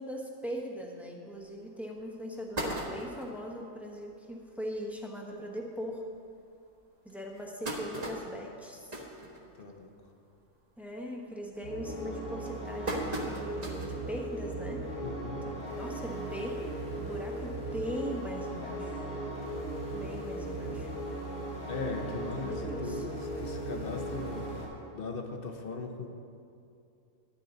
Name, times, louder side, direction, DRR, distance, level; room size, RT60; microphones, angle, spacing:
voice 1, 0.0-6.0 7.0-9.0 10.8-14.8 15.4-16.6 17.0-19.1 19.9-20.9 22.3-23.1, equal, ahead, -1 dB, 1.0 m, -40 dB
sound 1, 1.4-1.5 2.0-2.1 2.3-3.4 3.9-4.0 4.3-4.4 4.7-4.9 5.6-5.7 6.3-6.4 7.1-9.9 10.3-10.6 11.0-11.4 12.0-14.0 14.5-14.6 15.7-15.8, right 1 dB, 30° right, 1.3 m, -37 dB
voice 2, 9.6-9.9 15.0-15.5 21.7-24.5 24.9-26.1, left 3 dB, 45° left, 4 dB, 1.0 m, -38 dB
sound 2, 11.6-24.7, right 1 dB, 85° left, 3.0 m, -37 dB
12.5 x 10.0 x 4.0 m, 2.5 s
omnidirectional pair, 1.6 m